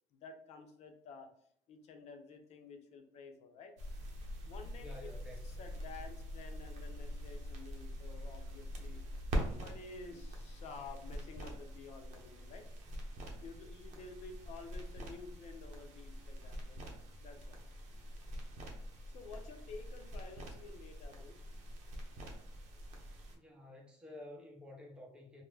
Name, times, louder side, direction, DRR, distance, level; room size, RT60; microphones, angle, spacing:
voice 1, 0.1-1.3 1.7-3.7 4.4-5.1 5.4-9.0 9.3-12.7 13.4-16.8 17.2-17.6 19.1-21.4, left 4 dB, 60° left, 5 dB, 0.5 m, -51 dB
sound 1, 3.8-23.4, equal, 70° right, 0.6 m, -44 dB
voice 2, 4.7-5.6 23.3-25.4, left 1 dB, 5° right, -1 dB, 0.7 m, -52 dB
2.2 x 2.0 x 3.1 m, 0.66 s
cardioid pair, 100°, 12 cm